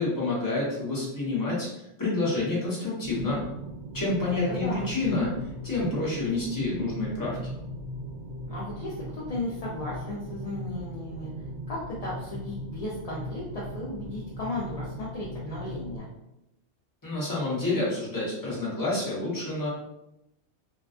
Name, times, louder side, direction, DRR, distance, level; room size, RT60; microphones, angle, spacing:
voice 1, 0.0-1.7 2.0-3.4 3.9-5.3 5.6-7.4 17.0-19.7, left 2 dB, 20° left, -7 dB, 0.8 m, -28 dB
sound 1, 3.0-16.0, equal, 70° right, 0.8 m, -38 dB
voice 2, 4.2-4.9 8.5-11.3 11.7-16.1, left 2 dB, 50° left, -6 dB, 0.5 m, -35 dB
2.4 x 2.2 x 2.4 m, 0.87 s
omnidirectional pair, 1.1 m